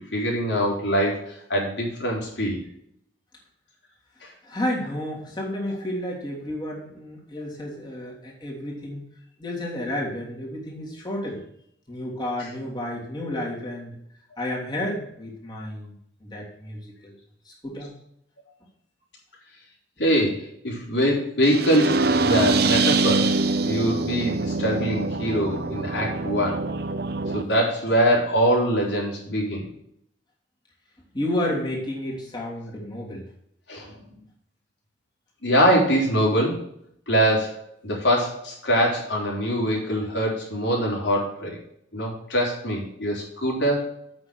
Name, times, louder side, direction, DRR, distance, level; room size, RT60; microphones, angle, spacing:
voice 1, 0.0-2.6 4.2-4.3 20.0-23.4 23.6-26.6 27.3-29.7 33.7-33.9 35.4-36.6 37.1-37.6 37.8-41.6 41.9-43.9, equal, 80° left, -2 dB, 3.8 m, -23 dB
voice 2, 4.4-9.0 9.4-11.4 11.9-13.9 14.4-15.9 16.2-16.8 17.0-17.1 17.5-17.9 31.1-33.2, left 1 dB, 25° left, -3 dB, 3.1 m, -31 dB
sound 1, 21.4-27.4, right 3 dB, 60° right, 0.7 m, -24 dB
8.6 x 6.2 x 6.3 m, 0.71 s
head